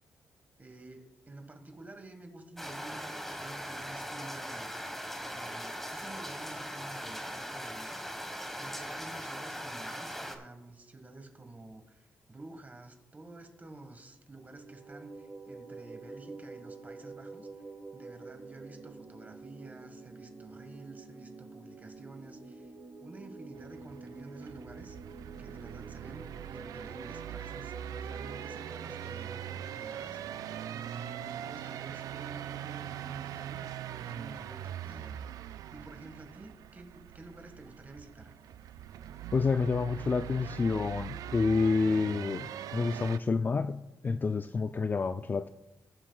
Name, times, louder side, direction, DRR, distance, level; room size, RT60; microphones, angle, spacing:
voice 1, 0.6-4.7 5.2-8.3 8.6-17.6 17.9-22.7 23.0-25.0 25.4-30.4 30.7-35.2 35.7-38.4, right 2 dB, 25° right, 6 dB, 1.6 m, -50 dB
sound 1, 2.6-10.4, equal, 5° left, 1.4 m, -40 dB
sound 2, 14.5-29.5, right 3 dB, 55° right, 1.8 m, -48 dB
sound 3, 23.5-43.2, right 10 dB, 85° right, 0.3 m, -42 dB
voice 2, 39.3-45.5, left 4 dB, 30° left, 10 dB, 0.3 m, -29 dB
20.5 x 7.4 x 2.3 m, 1.0 s
cardioid pair, 75°, 6 cm